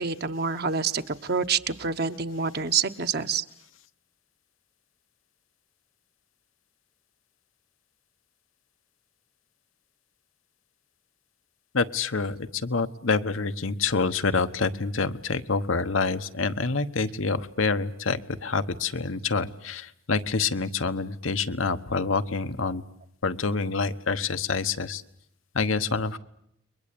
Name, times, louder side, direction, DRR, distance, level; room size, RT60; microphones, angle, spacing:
voice 1, 0.0-3.4, right 5 dB, 55° right, 9 dB, 1.2 m, -27 dB
voice 2, 11.7-22.8 23.2-25.0 25.5-26.2, left 4 dB, 90° left, 9 dB, 1.2 m, -27 dB
30.0 x 22.5 x 8.6 m, 0.76 s
head